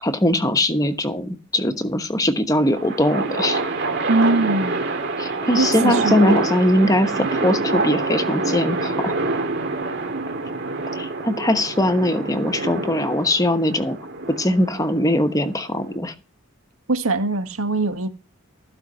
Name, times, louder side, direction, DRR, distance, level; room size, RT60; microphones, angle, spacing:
voice 1, 0.0-3.6 5.2-9.2 10.9-14.0 14.3-16.1, left 1 dB, 15° left, 1.0 m, -21 dB
sound 1, 2.5-15.9, right 3 dB, 50° right, 2.2 m, -26 dB
voice 2, 4.1-4.8 5.5-6.2 16.9-18.1, right 2 dB, 80° right, 1.8 m, -21 dB
15.0 x 5.2 x 7.5 m
head